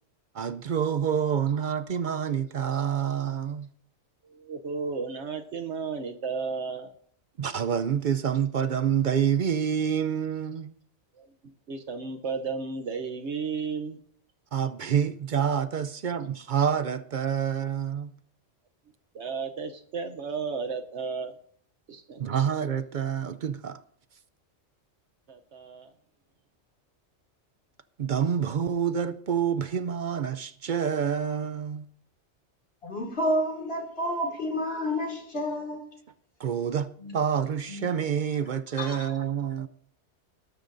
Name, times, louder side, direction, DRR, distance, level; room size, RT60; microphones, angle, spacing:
voice 1, 0.3-3.7 7.4-10.7 14.5-18.1 22.2-23.8 28.0-31.8 36.4-36.9 37.1-39.7, right 8 dB, 55° right, 0.6 m, -27 dB
voice 2, 4.2-6.9 11.2-14.0 19.1-21.3 21.9-22.4 25.3-25.9, right 5 dB, 75° right, 1.1 m, -34 dB
voice 3, 32.8-35.8 37.0-37.1 37.7-37.9 38.8-39.0, equal, 60° left, 2.5 m, -30 dB
20.0 x 11.5 x 2.6 m
omnidirectional pair, 1.2 m